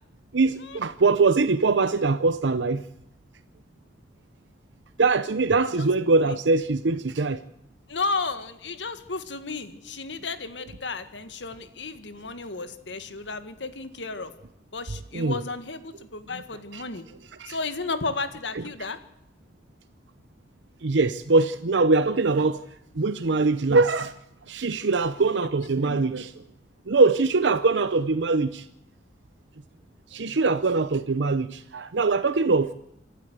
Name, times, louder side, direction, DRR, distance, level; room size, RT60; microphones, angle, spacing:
voice 1, 0.3-2.8 5.0-7.4 15.1-15.4 16.7-16.8 17.4-17.6 20.8-22.6 22.9-24.1 24.5-26.3 26.9-28.7 30.1-32.7, right 3 dB, 80° right, 0.7 m, -22 dB
voice 2, 7.9-14.3 14.7-17.0 17.5-19.0, left 3 dB, 85° left, 1.9 m, -33 dB
27.5 x 12.5 x 8.1 m
head